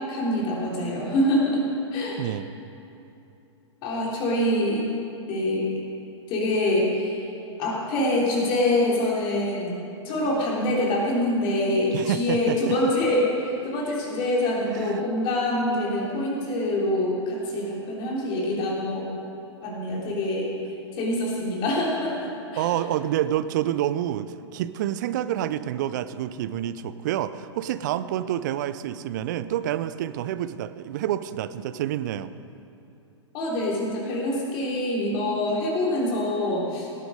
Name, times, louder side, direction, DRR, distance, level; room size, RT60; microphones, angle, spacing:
voice 1, 0.1-1.6 1.9-2.2 3.8-4.9 5.3-5.7 6.3-7.3 7.6-19.1 19.6-20.5 20.9-22.7 33.3-36.9, left 1 dB, 30° left, -3 dB, 3.4 m, -25 dB
voice 2, 11.9-12.7 14.7-15.0 22.6-32.3, right 12 dB, 40° right, 13 dB, 0.5 m, -28 dB
18.0 x 9.1 x 5.1 m, 2.7 s
figure-of-eight pair, 110°, 16 cm